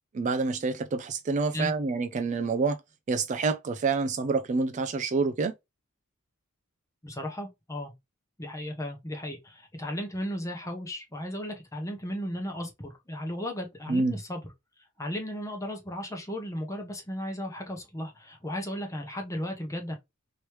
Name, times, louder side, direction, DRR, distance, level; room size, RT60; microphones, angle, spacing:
voice 1, 0.1-2.8 3.1-5.5 13.9-14.1, right 4 dB, 35° right, 0.3 m, -27 dB
voice 2, 7.0-7.9 8.4-14.4 15.0-20.0, equal, 15° left, 0.9 m, -35 dB
3.0 x 3.0 x 3.0 m
head